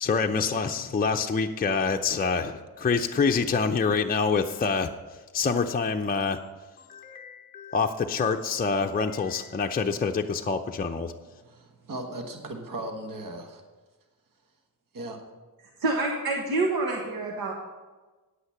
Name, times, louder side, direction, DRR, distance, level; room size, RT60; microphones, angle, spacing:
voice 1, 0.0-4.9 5.3-6.4 6.9-11.1, left 5 dB, 25° left, 4 dB, 0.5 m, -26 dB
voice 2, 11.4-13.6 14.9-15.2, right 1 dB, 60° right, 4 dB, 1.4 m, -37 dB
voice 3, 15.8-17.5, right 2 dB, 80° right, 0 dB, 1.4 m, -27 dB
9.9 x 8.1 x 5.7 m, 1.3 s
cardioid pair, 75°, 36 cm